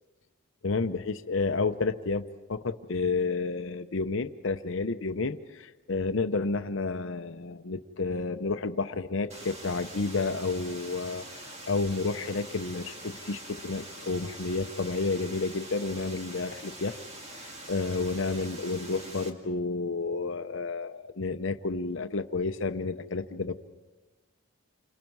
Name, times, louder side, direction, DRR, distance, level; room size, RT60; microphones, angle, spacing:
voice 1, 0.6-17.0 17.4-23.5, left 3 dB, 60° left, 9 dB, 0.7 m, -31 dB
sound 1, 9.3-19.3, right 1 dB, 30° right, 2.0 m, -44 dB
29.0 x 26.0 x 4.7 m, 1.2 s
head